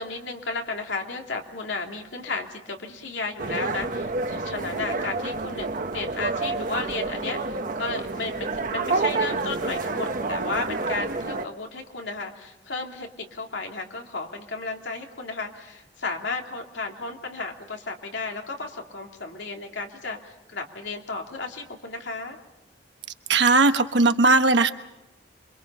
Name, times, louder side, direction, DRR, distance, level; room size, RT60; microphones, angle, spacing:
voice 1, 0.0-22.4, left 3 dB, 85° left, 2 dB, 3.0 m, -33 dB
sound 1, 3.4-11.5, right 3 dB, 50° right, 1.1 m, -29 dB
voice 2, 23.3-24.7, right 3 dB, 75° right, 8 dB, 1.3 m, -18 dB
27.0 x 24.0 x 5.6 m, 0.96 s
head